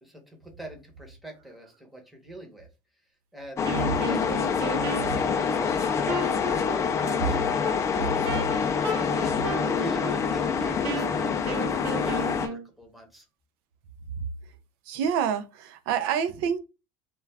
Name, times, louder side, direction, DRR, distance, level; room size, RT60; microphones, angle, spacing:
voice 1, 0.0-2.7 3.3-3.6 4.0-7.4 8.9-13.3, equal, ahead, 0.8 m, -42 dB
sound 1, 3.6-12.5, left 6 dB, 25° left, 0.4 m, -26 dB
Wind instrument woodwind instrument, 3.6-12.6, right 2 dB, 50° right, 0.8 m, -35 dB
voice 2, 14.9-16.6, right 8 dB, 85° right, 0.4 m, -27 dB
2.3 x 2.3 x 3.2 m
cardioid pair, 140°, 12 cm